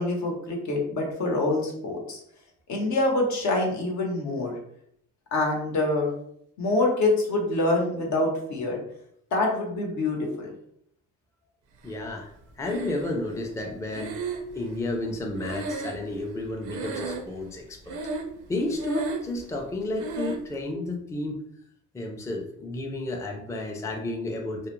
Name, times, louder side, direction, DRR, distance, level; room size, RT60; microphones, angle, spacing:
voice 1, 0.0-2.2 2.7-4.5 5.3-6.1 6.6-8.8 9.3-10.5, left 2 dB, 70° left, 0 dB, 0.8 m, -25 dB
voice 2, 11.8-12.3 12.6-14.2 14.6-18.0 18.5-21.4 21.9-24.7, left 1 dB, 10° left, 1 dB, 0.4 m, -32 dB
Breathing, 12.6-13.4 13.9-16.4 16.6-17.5 17.8-18.4 18.7-19.4 20.0-20.5, right 3 dB, 80° right, 0.5 m, -34 dB
2.3 x 2.0 x 3.0 m, 0.71 s
cardioid pair, 90°, 30 cm